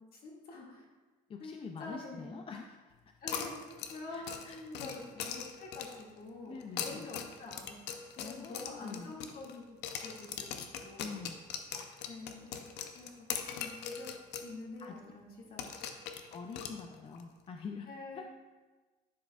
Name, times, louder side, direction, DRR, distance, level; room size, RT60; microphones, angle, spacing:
voice 1, 0.1-0.8 1.4-2.4 3.2-7.8 8.2-11.3 12.0-12.6 12.9-13.1 13.5-14.1 14.4-15.6 17.9-18.2, left 2 dB, 60° left, -3 dB, 2.0 m, -47 dB
voice 2, 1.3-2.8 4.1-5.0 6.5-7.1 8.2-9.1 11.0-11.4 11.8-12.0 14.8-15.0 16.3-17.9 18.1-18.2, left 5 dB, 35° left, 4 dB, 0.4 m, -45 dB
sound 1, 3.3-6.1 6.6-9.6 9.8-14.5 14.8-14.9 15.6-17.2, left 8 dB, 85° left, 0.6 m, -41 dB
11.0 x 4.8 x 2.3 m, 1.3 s
cardioid pair, 110°, 17 cm